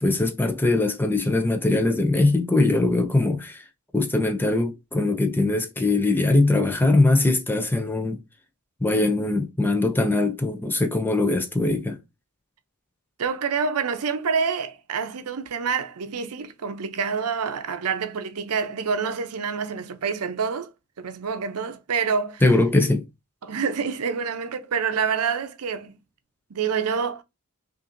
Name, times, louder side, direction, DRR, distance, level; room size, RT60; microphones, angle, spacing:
voice 1, 0.0-3.6 3.9-8.2 8.8-12.0 22.4-23.0, left 2 dB, 10° left, 0.5 m, -21 dB
voice 2, 13.2-20.7 21.0-22.4 23.4-26.0 26.5-27.2, right 6 dB, 75° right, 0.6 m, -27 dB
5.5 x 2.5 x 2.5 m
head